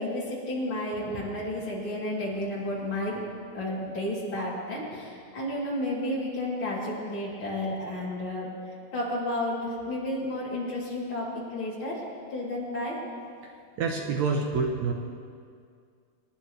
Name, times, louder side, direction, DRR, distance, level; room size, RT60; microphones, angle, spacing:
voice 1, 0.0-3.2 3.5-8.5 8.9-12.0 12.3-13.0, left 1 dB, 35° left, -6 dB, 3.7 m, -32 dB
voice 2, 13.8-14.9, right 4 dB, 70° right, 1 dB, 1.8 m, -27 dB
26.0 x 10.5 x 3.3 m, 2.2 s
omnidirectional pair, 4.0 m